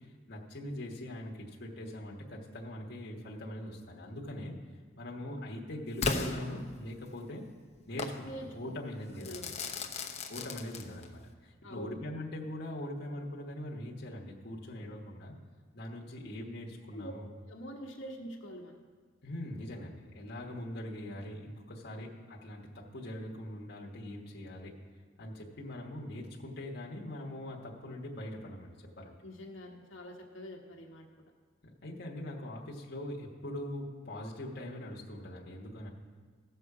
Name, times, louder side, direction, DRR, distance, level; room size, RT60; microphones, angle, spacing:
voice 1, 0.0-4.5 5.0-7.4 7.9-9.5 10.3-15.3 15.7-17.3 19.2-24.8 25.2-29.2 31.6-35.9, left 1 dB, 55° left, -3 dB, 1.2 m, -42 dB
Crackle / Fireworks, 6.0-7.2 8.0-8.2 9.2-11.2, left 3 dB, 35° left, 0.7 m, -35 dB
voice 2, 8.2-8.7 9.2-9.5 11.6-12.0 16.9-17.1 17.4-18.8 29.2-31.3, equal, 80° left, 0 dB, 1.4 m, -45 dB
16.5 x 6.8 x 4.8 m, 1.5 s
head